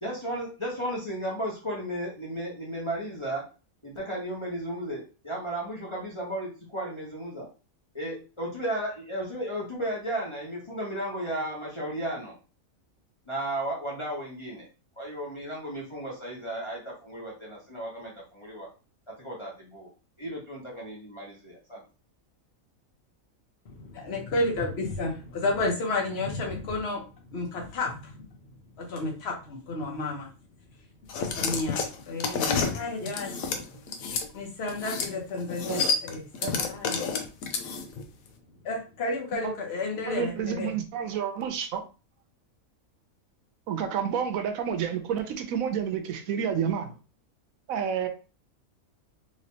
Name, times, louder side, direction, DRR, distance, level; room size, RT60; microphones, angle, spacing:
voice 1, 0.0-3.4 3.8-7.5 7.9-12.3 13.3-14.7 15.0-18.7 19.1-19.9 20.2-21.8, right 1 dB, 25° left, -5 dB, 0.9 m, -34 dB
voice 2, 23.7-27.0 27.3-28.0 28.8-30.3 31.1-33.4 34.3-37.0 38.6-40.8, left 2 dB, 50° left, 0 dB, 1.2 m, -31 dB
sound 1, 31.1-34.3 34.7-35.1 35.4-38.0, left 5 dB, 80° left, 1.0 m, -29 dB
voice 3, 40.1-41.8 43.7-46.9 47.7-48.1, right 8 dB, 75° right, 7 dB, 1.0 m, -29 dB
3.1 x 3.1 x 2.8 m, 0.33 s
omnidirectional pair, 1.5 m